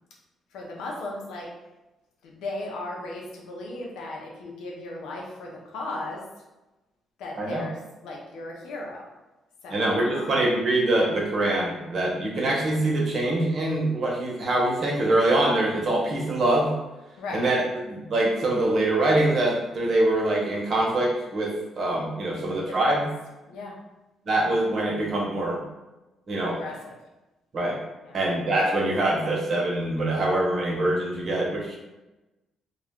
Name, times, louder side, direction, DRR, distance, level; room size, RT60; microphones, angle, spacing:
voice 1, 0.5-1.5 2.2-6.2 7.2-9.1 9.6-10.5 17.2-17.5 22.4-23.1 23.5-23.8 26.5-27.0 28.0-28.2, left 2 dB, 85° left, -1 dB, 0.6 m, -37 dB
voice 2, 9.7-16.7 17.3-17.6 17.8-21.5 21.8-23.1 24.3-25.6 26.3-26.6 27.5-27.8 28.1-31.8, right 1 dB, 55° right, -3 dB, 0.8 m, -24 dB
2.3 x 2.1 x 3.5 m, 1.0 s
cardioid pair, 90°, 0 cm